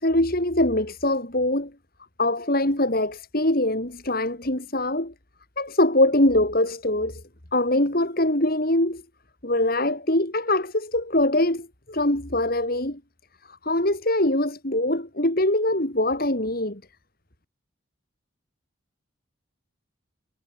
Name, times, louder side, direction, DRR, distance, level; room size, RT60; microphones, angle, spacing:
voice 1, 0.0-1.7 2.2-5.1 5.6-7.2 7.5-9.0 9.4-13.0 13.6-16.8, left 1 dB, 45° left, 3.5 m, -23 dB
head